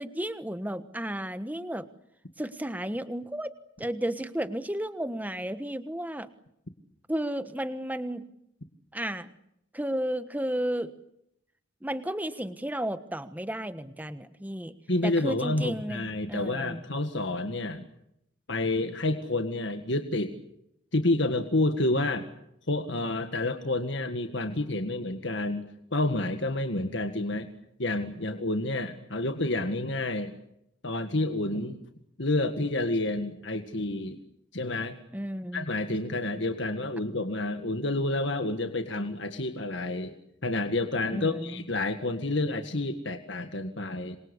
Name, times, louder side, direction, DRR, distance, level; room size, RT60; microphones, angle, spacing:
voice 1, 0.0-1.9 2.4-3.5 3.8-6.3 7.1-8.3 8.9-9.3 9.7-10.9 11.8-14.7 15.0-16.8 35.1-35.7 41.1-41.6, right 1 dB, 10° right, 11 dB, 1.3 m, -33 dB
voice 2, 14.9-17.9 18.5-20.3 20.9-22.3 22.7-27.5 27.8-30.3 30.8-31.8 32.2-34.2 34.5-35.0 35.5-40.2 40.4-44.2, left 2 dB, 60° left, 7 dB, 1.8 m, -29 dB
27.5 x 23.5 x 8.2 m, 0.78 s
head